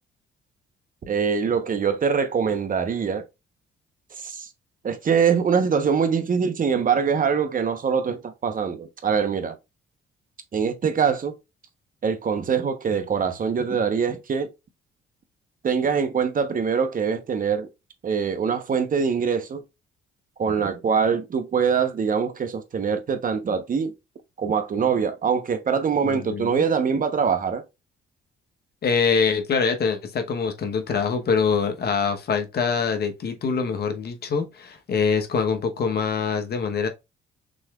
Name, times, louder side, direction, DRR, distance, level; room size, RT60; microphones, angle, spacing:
voice 1, 1.1-3.2 4.2-4.5 4.8-9.5 10.5-11.4 12.0-14.5 15.6-17.7 18.0-19.6 20.4-23.9 24.4-27.6, right 6 dB, 45° right, 0.9 m, -23 dB
voice 2, 26.0-26.6 28.8-36.9, left 5 dB, 55° left, 1.0 m, -24 dB
6.2 x 3.2 x 2.3 m
cardioid pair, 90°, 20 cm